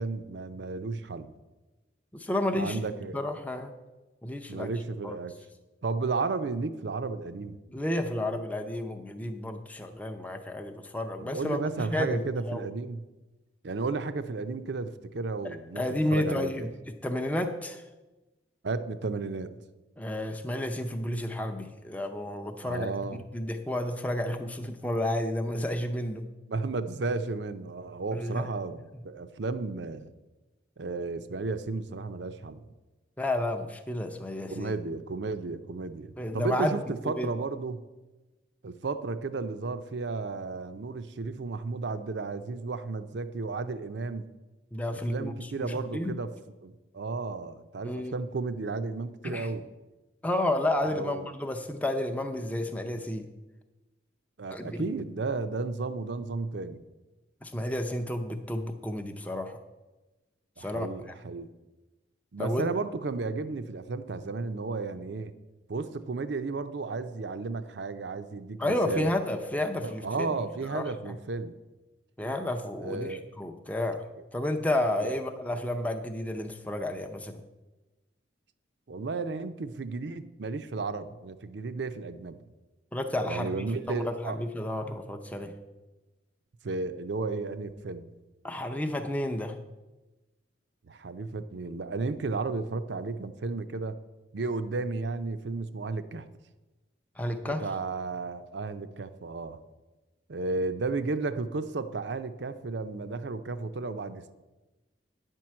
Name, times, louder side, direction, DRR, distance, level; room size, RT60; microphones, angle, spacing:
voice 1, 0.0-1.3 2.5-3.2 4.5-5.3 5.8-7.6 11.2-13.0 13.6-15.8 16.1-16.7 18.6-19.5 22.6-23.2 26.5-30.1 30.8-32.6 34.5-37.8 38.6-44.3 44.9-46.3 46.6-49.6 50.9-51.3 54.4-56.8 60.6-61.5 62.3-65.3 65.7-69.1 69.8-71.6 72.8-73.3 75.0-75.2 78.9-82.4 83.2-84.4 86.6-88.1 90.9-94.0 94.3-96.3 97.4-99.6 100.3-104.3, right 3 dB, 65° right, 11 dB, 0.5 m, -33 dB
voice 2, 2.1-2.8 3.1-3.7 4.2-4.7 5.0-5.2 7.7-12.2 12.5-12.7 15.8-17.8 20.0-22.9 23.3-26.3 28.1-28.5 33.2-34.7 36.2-37.3 44.7-46.2 47.8-48.1 49.2-49.5 50.2-53.3 54.5-54.9 57.4-59.6 60.6-60.9 62.4-62.7 68.6-70.4 70.7-71.2 72.2-74.0 74.3-77.4 82.9-85.5 88.4-89.6 97.2-97.6, left 1 dB, 10° left, 4 dB, 0.5 m, -31 dB
9.8 x 4.6 x 7.4 m, 1.1 s
head